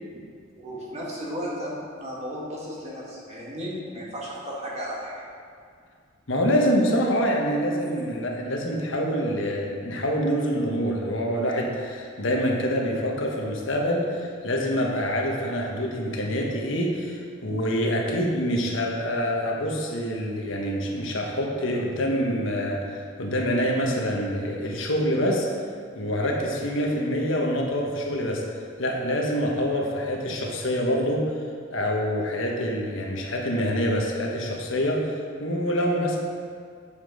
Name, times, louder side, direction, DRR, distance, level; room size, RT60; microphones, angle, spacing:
voice 1, 0.6-1.7 2.0-5.2, equal, 35° right, -5 dB, 2.1 m, -34 dB
voice 2, 6.3-25.5 25.9-28.4 28.8-31.3 31.7-35.1 35.4-36.2, equal, 70° left, -1 dB, 1.4 m, -26 dB
8.7 x 7.4 x 5.0 m, 2.2 s
head